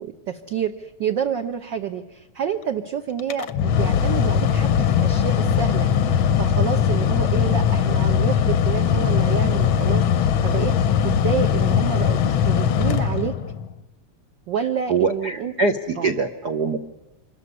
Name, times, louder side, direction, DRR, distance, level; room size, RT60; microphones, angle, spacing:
voice 1, 0.0-10.0 10.4-10.7 11.0-12.2 12.4-13.3 14.5-15.5 16.0-16.1, right 8 dB, 60° right, 5 dB, 1.2 m, -28 dB
Mechanical fan, 3.2-13.7, left 8 dB, 65° left, 1.2 m, -20 dB
voice 2, 14.9-16.8, right 4 dB, 75° right, 6 dB, 0.9 m, -23 dB
26.0 x 14.0 x 9.7 m, 1.0 s
omnidirectional pair, 3.3 m